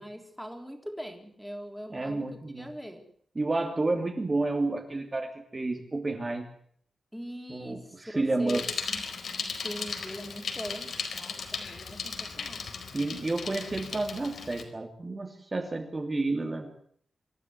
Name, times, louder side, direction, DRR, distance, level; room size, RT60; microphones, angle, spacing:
voice 1, 0.0-3.1 7.1-8.6 8.9-12.7, equal, ahead, 4 dB, 3.6 m, -42 dB
voice 2, 1.9-2.7 3.4-6.5 7.5-8.6 12.9-16.7, right 2 dB, 25° right, 3 dB, 2.7 m, -30 dB
Bicycle, 8.5-14.6, left 5 dB, 75° left, 4.4 m, -36 dB
26.0 x 14.5 x 9.6 m, 0.63 s
wide cardioid pair, 155°, 0 cm